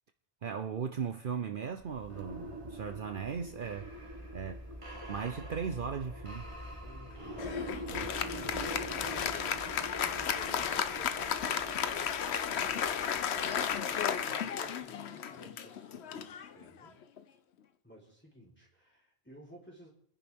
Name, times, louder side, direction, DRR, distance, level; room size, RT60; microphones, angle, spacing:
voice 1, 0.4-3.9 4.3-4.6 5.1-6.5 7.9-8.0, right 6 dB, 55° right, 0.9 m, -37 dB
sound 1, 1.7-14.5, equal, 30° right, 2.0 m, -44 dB
voice 2, 6.8-17.0 17.8-19.9, right 1 dB, 10° left, 3.8 m, -54 dB
Applause, 7.4-17.2, left 8 dB, 90° left, 1.0 m, -34 dB
29.5 x 10.5 x 3.6 m
omnidirectional pair, 1.1 m